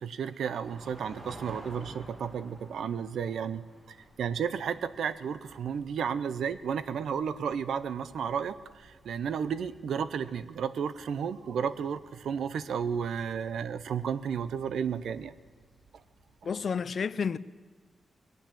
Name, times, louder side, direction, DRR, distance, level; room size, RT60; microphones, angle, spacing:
voice 1, 0.0-15.3, right 7 dB, 85° right, 0.6 m, -33 dB
sound 1, 0.6-16.6, right 1 dB, 35° right, 4.2 m, -54 dB
voice 2, 16.4-17.4, left 6 dB, 55° left, 0.4 m, -30 dB
20.5 x 9.2 x 7.5 m
cardioid pair, 105°, 0 cm